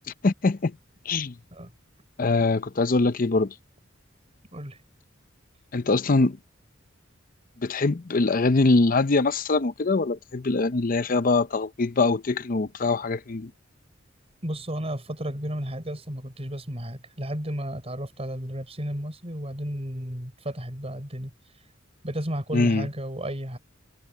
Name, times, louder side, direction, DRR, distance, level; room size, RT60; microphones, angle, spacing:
voice 1, 0.2-0.8 1.1-1.3 2.2-3.5 5.7-6.4 7.6-13.5 22.5-22.9, left 3 dB, 45° left, 0.7 m, -23 dB
voice 2, 14.4-21.3 22.0-23.6, equal, 30° right, 5.7 m, -33 dB
head